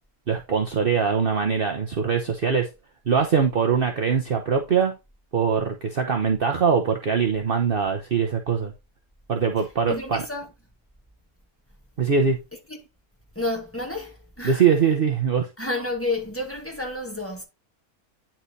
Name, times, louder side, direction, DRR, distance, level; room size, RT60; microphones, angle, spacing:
voice 1, 0.3-2.7 3.1-4.9 5.3-8.7 9.3-10.2 12.0-12.4 14.4-15.5, right 6 dB, 45° right, 1.0 m, -22 dB
voice 2, 9.9-10.5 12.7-12.8 13.3-14.6 15.6-17.4, left 2 dB, 10° left, 2.4 m, -30 dB
9.8 x 4.5 x 4.2 m
omnidirectional pair, 1.5 m